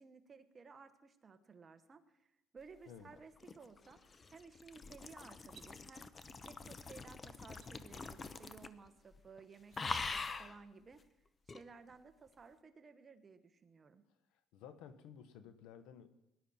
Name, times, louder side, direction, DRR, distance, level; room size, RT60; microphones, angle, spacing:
voice 1, 0.0-4.0 4.3-6.1 6.4-11.1 11.5-14.0, right 5 dB, 30° right, 8 dB, 1.2 m, -57 dB
sound 1, 3.1-8.9 9.1-9.4 9.7-10.6 11.5-11.6, left 4 dB, 30° left, 0.8 m, -44 dB
sound 2, 5.4-5.7 7.5-7.7 9.5-9.8, right 11 dB, 60° right, 0.8 m, -62 dB
voice 2, 14.5-16.1, left 8 dB, 80° left, 11 dB, 1.1 m, -54 dB
18.5 x 11.0 x 4.4 m, 0.86 s
cardioid pair, 105°, 0 cm